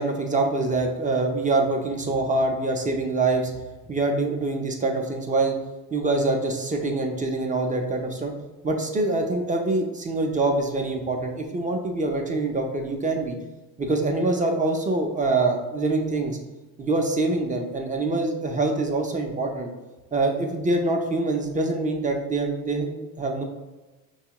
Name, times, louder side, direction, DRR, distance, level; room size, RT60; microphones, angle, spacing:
voice 1, 0.0-3.5 3.9-5.5 5.9-8.3 8.6-13.3 13.8-16.4 16.8-19.7 20.1-23.4, right 2 dB, 20° right, 3 dB, 0.5 m, -25 dB
5.4 x 2.3 x 2.9 m, 1.1 s
cardioid pair, 100°, 39 cm